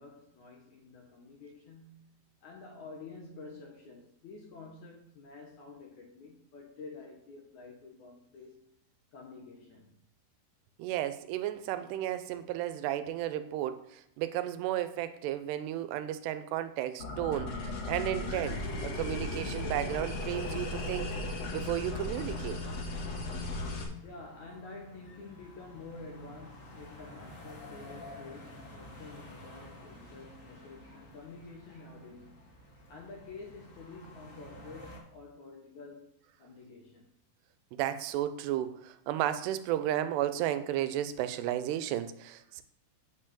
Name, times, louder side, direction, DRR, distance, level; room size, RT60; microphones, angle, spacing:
voice 1, 0.0-2.1 2.4-8.6 9.1-10.0 24.0-32.5 32.9-36.1 36.4-37.1, left 3 dB, 65° left, 1.9 m, -49 dB
voice 2, 10.8-17.6 17.9-21.1 21.5-22.6 37.7-42.6, right 12 dB, 90° right, 2.8 m, -33 dB
sound 1, 17.0-23.8, left 2 dB, 50° left, 2.6 m, -36 dB
sound 2, 18.3-35.0, left 1 dB, 30° left, 1.5 m, -51 dB
8.9 x 4.5 x 7.5 m
omnidirectional pair, 4.7 m